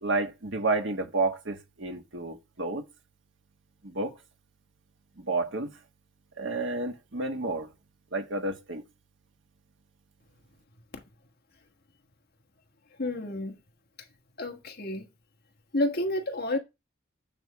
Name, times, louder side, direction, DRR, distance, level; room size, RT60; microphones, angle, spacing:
voice 1, 0.0-2.8 3.8-4.2 5.2-5.7 6.4-7.7 8.1-8.8, right 2 dB, 70° right, 1.4 m, -30 dB
voice 2, 13.0-13.5 14.4-15.0 15.7-16.6, left 1 dB, 50° left, 1.7 m, -30 dB
9.0 x 3.6 x 6.1 m
head